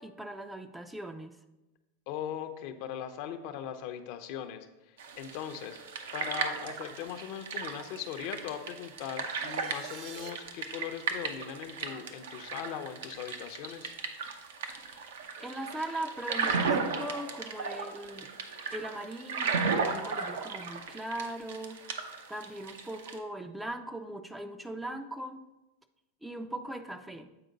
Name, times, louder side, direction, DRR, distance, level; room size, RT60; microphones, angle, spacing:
voice 1, 0.0-1.4 14.9-15.1 15.4-18.3 18.7-25.5 26.2-27.3, right 1 dB, 5° right, 8 dB, 0.4 m, -40 dB
voice 2, 2.1-5.8 6.1-13.9, left 9 dB, 55° left, 8 dB, 0.6 m, -40 dB
sound 1, 5.0-23.2, right 5 dB, 85° right, 0.7 m, -35 dB
sound 2, 9.1-10.3, right 6 dB, 55° right, 0.9 m, -48 dB
7.7 x 4.5 x 3.9 m, 1.0 s
supercardioid pair, 120°, 0 cm